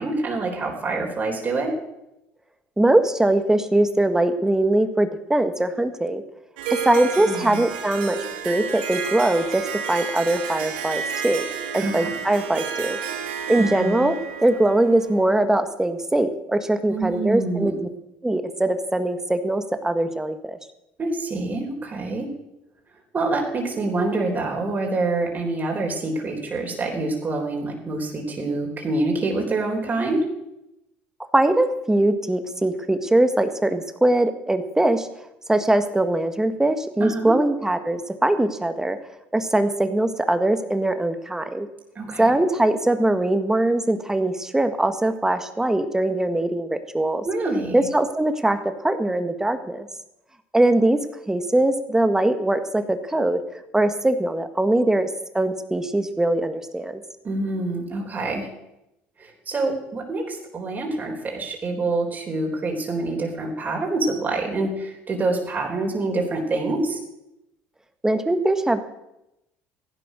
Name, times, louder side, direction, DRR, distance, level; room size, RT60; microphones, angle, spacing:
voice 1, 0.0-1.8 7.3-7.6 11.8-12.1 13.6-14.0 16.9-17.7 21.0-22.3 23.1-30.2 37.0-37.3 42.0-42.3 47.2-47.8 57.2-58.5 59.2-67.0, right 2 dB, 35° right, 0 dB, 4.0 m, -26 dB
voice 2, 2.8-6.2 6.7-8.2 8.5-11.5 11.7-13.0 13.5-14.2 14.4-17.7 18.2-20.6 31.3-35.1 35.5-39.0 39.3-41.7 42.2-47.3 47.7-49.9 50.5-51.0 51.3-55.1 55.3-57.0 68.0-68.9, right 1 dB, 10° right, 9 dB, 1.7 m, -21 dB
Harp, 6.6-15.3, right 7 dB, 85° right, 1.9 m, -31 dB
15.5 x 11.0 x 6.3 m, 0.89 s
supercardioid pair, 75°, 5 cm